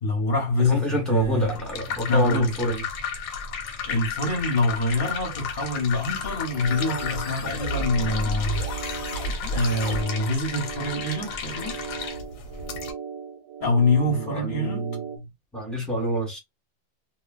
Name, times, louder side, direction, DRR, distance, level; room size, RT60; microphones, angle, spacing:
voice 1, 0.0-1.5 2.1-2.5 3.8-8.6 8.9-9.0 9.5-11.8 13.6-14.9, left 2 dB, 40° left, 0.8 m, -25 dB
voice 2, 0.6-2.8 14.0-15.0 15.5-16.4, equal, ahead, 0.7 m, -27 dB
sound 1, 1.2-12.9, left 6 dB, 85° left, 1.4 m, -34 dB
sound 2, 5.2-10.0, right 1 dB, 60° left, 0.9 m, -33 dB
sound 3, 6.3-15.2, right 6 dB, 85° right, 1.3 m, -38 dB
3.0 x 2.3 x 2.3 m
omnidirectional pair, 2.0 m